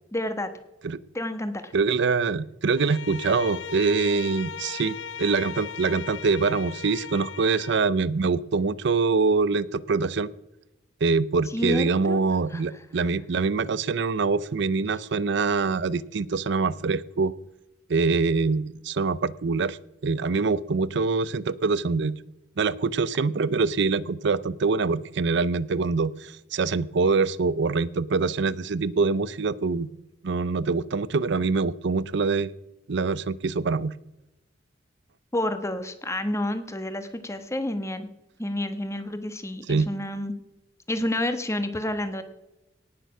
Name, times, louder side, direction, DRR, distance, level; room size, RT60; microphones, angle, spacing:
voice 1, 0.1-0.5 1.1-1.7 11.5-12.2 12.5-12.6 35.3-38.1 38.4-40.3 40.9-42.2, left 1 dB, 15° left, 9 dB, 1.1 m, -29 dB
voice 2, 1.7-10.3 11.0-17.3 17.9-19.8 20.0-22.1 22.6-29.9 30.2-32.5 32.9-33.9 39.7-39.9, right 4 dB, 65° right, 19 dB, 0.5 m, -24 dB
Bowed string instrument, 2.7-7.9, left 6 dB, 75° left, 0.6 m, -38 dB
18.0 x 6.8 x 6.0 m, 0.95 s
head